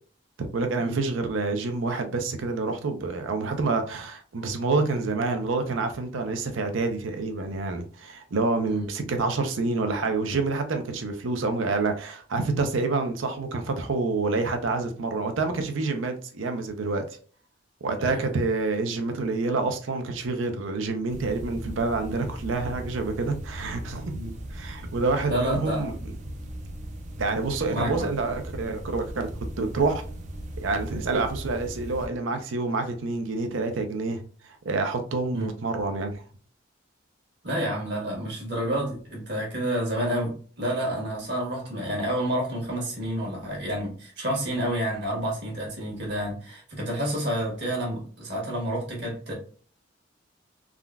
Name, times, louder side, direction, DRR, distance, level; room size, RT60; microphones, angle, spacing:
voice 1, 0.4-17.1 17.8-24.1 24.5-25.9 27.2-29.3 29.6-30.0 30.6-36.2, right 3 dB, 80° right, 0.5 m, -27 dB
voice 2, 18.0-18.3 24.1-24.3 25.3-26.0 27.7-28.1 35.3-35.5 37.4-49.3, right 1 dB, 60° right, 1.3 m, -29 dB
sound 1, 21.1-32.1, right 1 dB, 40° right, 0.4 m, -38 dB
3.6 x 2.2 x 2.3 m
head